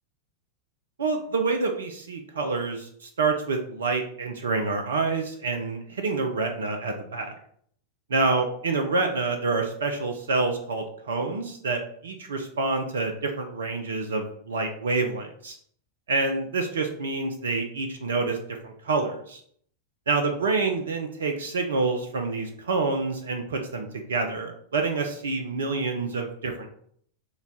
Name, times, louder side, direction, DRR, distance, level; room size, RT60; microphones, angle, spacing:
voice 1, 1.0-7.4 8.1-15.6 16.1-18.4 18.6-19.4 20.1-26.7, right 3 dB, 65° right, 5 dB, 0.5 m, -27 dB
4.0 x 2.3 x 4.0 m, 0.64 s
figure-of-eight pair, 90°, 0 cm